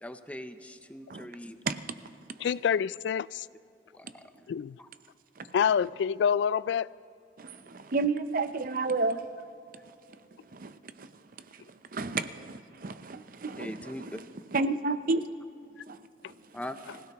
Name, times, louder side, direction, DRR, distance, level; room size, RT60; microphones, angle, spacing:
voice 1, 0.0-1.6 3.9-4.5 4.8-4.9 13.6-14.2 16.5-16.8, left 1 dB, 10° left, 0.6 m, -41 dB
voice 2, 1.7-2.5 5.4-5.5 7.4-9.3 9.8-9.9 10.5-11.2 11.5-14.1 14.5-15.2 15.9-16.0 16.2-16.3, right 3 dB, 50° right, 0.6 m, -32 dB
voice 3, 2.4-3.5 4.5-4.8 5.5-6.9, left 7 dB, 85° left, 0.3 m, -27 dB
25.0 x 16.5 x 3.0 m
head